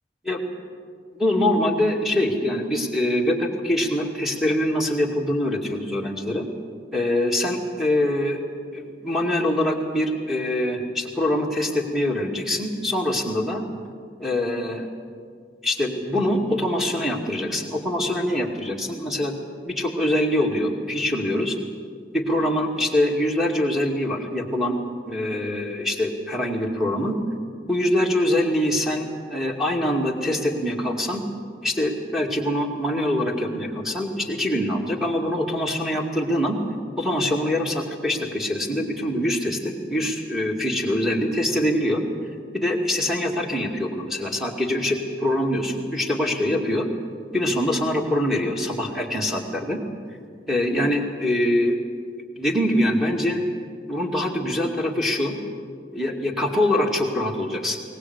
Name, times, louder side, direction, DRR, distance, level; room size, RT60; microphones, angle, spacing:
voice 1, 1.1-6.5 6.9-8.4 8.7-13.7 14.2-14.9 15.6-21.6 22.1-24.8 25.1-27.1 27.7-31.2 31.6-36.6 37.0-42.0 42.5-46.9 47.3-49.8 50.5-51.8 52.4-53.4 53.9-55.4 55.9-57.8, left 1 dB, ahead, -3 dB, 2.4 m, -24 dB
21.5 x 19.5 x 8.2 m, 2.1 s
head